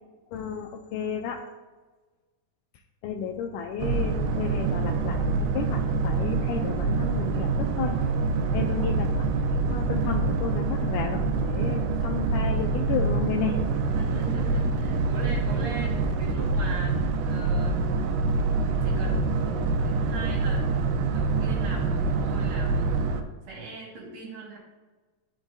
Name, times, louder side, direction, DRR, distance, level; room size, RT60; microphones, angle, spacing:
voice 1, 0.3-1.4 3.0-7.9 8.5-9.1 9.6-13.6, left 7 dB, 80° left, 2 dB, 2.0 m, -32 dB
Boat Water vehicle, 3.8-23.2, right 3 dB, 85° right, 2.3 m, -26 dB
voice 2, 8.4-9.0 13.9-23.0 23.5-24.6, right 3 dB, 45° right, -2 dB, 2.2 m, -39 dB
13.0 x 4.8 x 2.6 m, 1.3 s
omnidirectional pair, 3.8 m